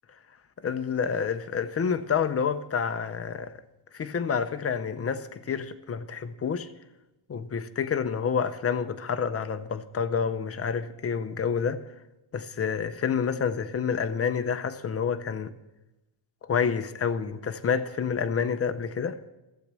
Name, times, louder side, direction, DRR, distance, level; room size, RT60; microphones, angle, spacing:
voice 1, 0.6-3.5 3.9-6.7 7.3-11.8 12.3-15.5 16.4-19.2, left 6 dB, 30° left, 0.5 m, -28 dB
12.0 x 8.2 x 7.4 m
wide cardioid pair, 165°, 50 cm